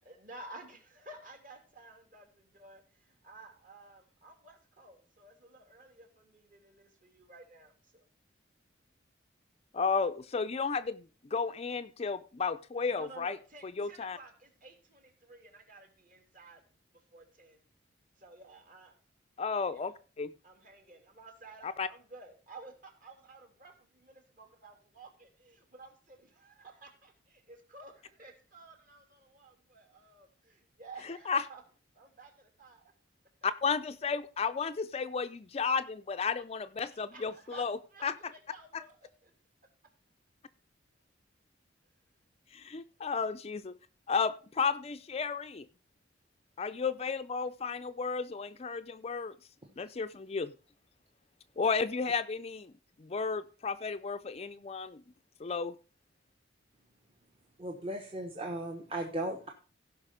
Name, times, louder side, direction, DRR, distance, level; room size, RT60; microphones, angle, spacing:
voice 1, 0.0-8.1 12.9-16.6 16.9-17.6 18.2-18.9 19.7-19.9 20.4-31.6 31.9-32.9 36.8-39.3, right 2 dB, 45° right, 4 dB, 2.7 m, -53 dB
voice 2, 9.7-13.4 13.6-14.2 19.4-20.3 21.6-21.9 31.3-31.4 33.4-38.2 38.7-38.8 42.5-43.7 44.1-45.7 46.6-49.4 49.8-50.5 51.6-52.7 53.0-55.0 55.4-55.8, left 5 dB, 30° left, 11 dB, 0.4 m, -33 dB
voice 3, 57.6-59.5, right 1 dB, 30° right, 2 dB, 1.1 m, -36 dB
16.0 x 5.6 x 5.1 m, 0.37 s
head